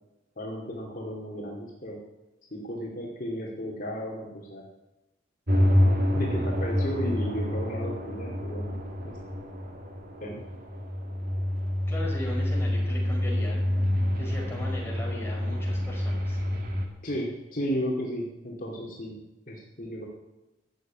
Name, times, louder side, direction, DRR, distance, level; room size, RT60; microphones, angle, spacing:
voice 1, 0.4-2.0 2.5-4.6 6.1-9.1 10.2-10.4 17.0-19.1 19.5-20.1, equal, 50° left, -3 dB, 2.5 m, -34 dB
sound 1, 5.5-16.9, left 1 dB, 55° right, 2.3 m, -27 dB
voice 2, 11.9-13.6 14.2-16.4, left 1 dB, 15° left, -3 dB, 5.0 m, -38 dB
14.0 x 7.5 x 9.0 m, 1.0 s
head